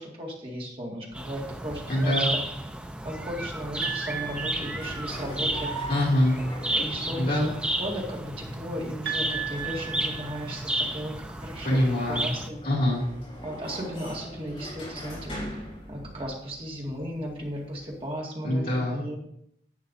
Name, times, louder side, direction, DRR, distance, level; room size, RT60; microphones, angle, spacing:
voice 1, 0.0-2.4 3.0-5.7 6.7-7.5 7.8-11.8 12.1-12.6 13.4-15.5 15.9-19.2, equal, 30° right, -2 dB, 2.0 m, -35 dB
sound 1, 1.1-18.2, right 1 dB, 35° left, 3.9 m, -43 dB
sound 2, 1.1-12.5, right 1 dB, 5° right, 0.4 m, -33 dB
voice 2, 1.9-2.3 5.9-6.4 7.1-7.5 11.6-12.3 12.6-13.0 18.4-19.2, left 1 dB, 50° left, -7 dB, 2.6 m, -24 dB
sound 3, 3.8-5.5 9.1-11.1, right 8 dB, 65° right, 1.8 m, -36 dB
11.0 x 8.0 x 2.7 m, 0.72 s
head